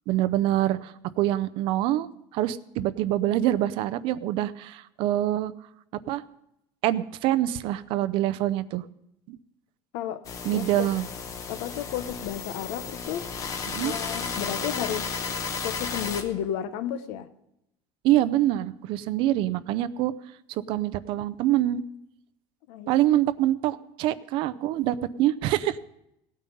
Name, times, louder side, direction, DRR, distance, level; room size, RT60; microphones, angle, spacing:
voice 1, 0.1-5.5 6.1-6.2 6.8-8.8 9.3-9.4 10.4-11.1 13.7-13.9 18.0-20.1 20.5-21.8 22.9-25.8, right 13 dB, 55° right, 16 dB, 0.5 m, -25 dB
sound 1, 10.2-16.2, left 5 dB, 35° left, 1.0 m, -33 dB
voice 2, 10.5-10.9 11.5-13.3 13.8-15.2 15.5-17.3 22.7-22.9, left 10 dB, 75° left, 13 dB, 0.9 m, -32 dB
17.5 x 9.2 x 5.3 m, 0.81 s
cardioid pair, 155°, 10 cm